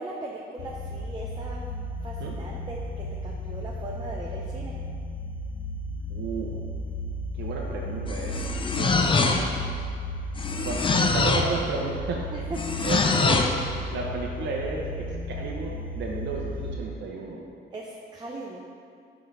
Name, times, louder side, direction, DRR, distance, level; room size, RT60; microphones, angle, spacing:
voice 1, 0.0-1.6 2.0-4.7 12.3-12.6 12.9-13.0 17.7-18.6, right 2 dB, 20° right, -2 dB, 0.6 m, -38 dB
sound 1, 0.6-16.8, left 1 dB, 85° left, 0.6 m, -34 dB
voice 2, 6.1-6.5 7.3-8.4 8.7-9.4 10.6-12.3 12.8-13.4 13.9-17.4, right 4 dB, 65° right, -2 dB, 0.7 m, -33 dB
sound 2, 8.1-9.7 10.4-11.6 12.6-13.6, left 4 dB, 25° left, 0.5 m, -24 dB
4.9 x 3.9 x 5.4 m, 2.3 s
cardioid pair, 90°, 20 cm